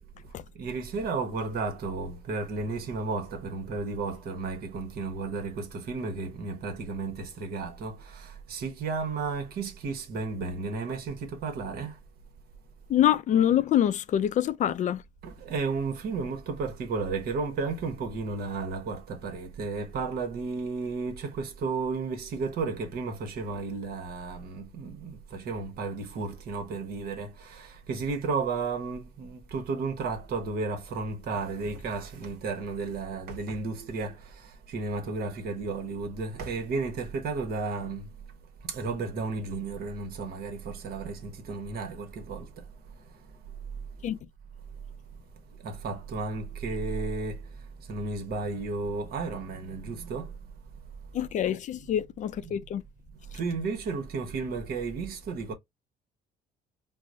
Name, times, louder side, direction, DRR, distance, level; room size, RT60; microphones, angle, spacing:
voice 1, 0.5-12.0 15.2-38.1 38.6-42.6 45.6-47.4 47.9-50.3 52.4-52.5 53.3-55.5, right 4 dB, 65° right, 1.0 m, -33 dB
voice 2, 12.9-15.0 44.0-44.2 51.1-52.8, left 11 dB, 45° left, 0.4 m, -25 dB
4.5 x 2.0 x 2.6 m
cardioid pair, 110°, 17 cm